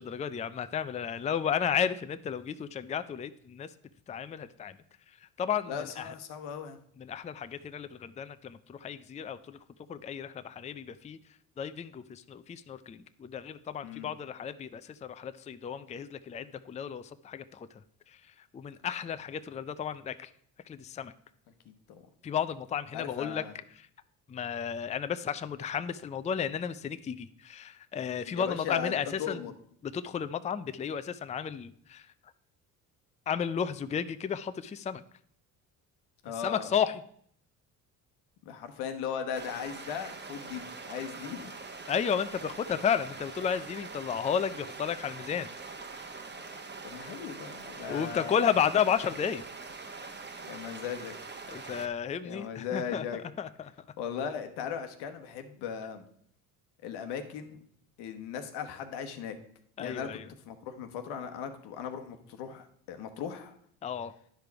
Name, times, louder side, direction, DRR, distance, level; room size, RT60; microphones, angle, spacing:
voice 1, 0.0-3.7 4.1-4.8 5.4-6.1 7.0-9.6 9.9-11.2 11.6-17.7 18.5-20.3 20.7-21.1 22.2-23.4 23.8-23.9 24.3-29.4 29.8-32.1 33.3-35.0 36.3-37.0 41.9-45.5 47.9-49.4 51.5-53.0 53.4-53.7 59.8-60.3 63.8-64.1, left 8 dB, 20° left, 12 dB, 0.4 m, -33 dB
voice 2, 5.7-6.8 13.8-14.1 21.6-22.1 22.9-23.5 28.3-29.5 36.2-36.7 38.4-41.5 46.8-48.5 50.5-51.2 52.2-53.2 54.0-56.0 56.8-57.6 58.0-59.4 59.8-60.1 60.4-63.5, left 7 dB, 85° left, 7 dB, 1.1 m, -38 dB
sound 1, 39.3-51.9, right 4 dB, 25° right, 1.1 m, -43 dB
10.5 x 5.0 x 4.6 m, 0.63 s
supercardioid pair, 85°, 38 cm